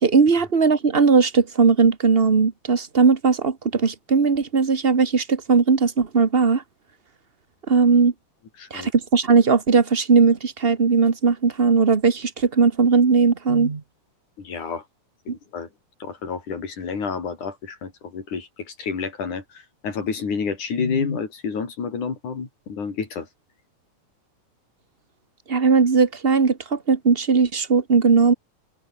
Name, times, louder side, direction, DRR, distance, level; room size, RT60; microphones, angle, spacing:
voice 1, 0.0-6.6 7.7-8.1 8.7-13.8 25.5-28.3, right 5 dB, 60° right, 0.5 m, -18 dB
voice 2, 8.6-8.9 14.4-14.8 15.3-15.7 16.0-23.3, left 5 dB, 70° left, 5.8 m, -29 dB
omnidirectional pair, 3.6 m